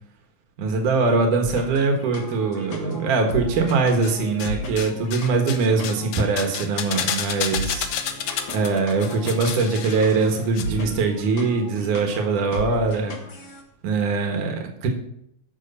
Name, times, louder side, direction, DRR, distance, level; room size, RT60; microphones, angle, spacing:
voice 1, 0.6-7.9 8.5-13.1 13.8-14.6 14.8-14.9, right 4 dB, 85° right, 4 dB, 3.0 m, -22 dB
sound 1, 1.4-13.6, left 1 dB, 45° left, 2.0 m, -36 dB
sound 2, 3.7-4.5 4.8-10.6 10.9-11.0, left 8 dB, 70° left, 1.9 m, -30 dB
12.5 x 6.5 x 5.5 m, 0.75 s
omnidirectional pair, 3.5 m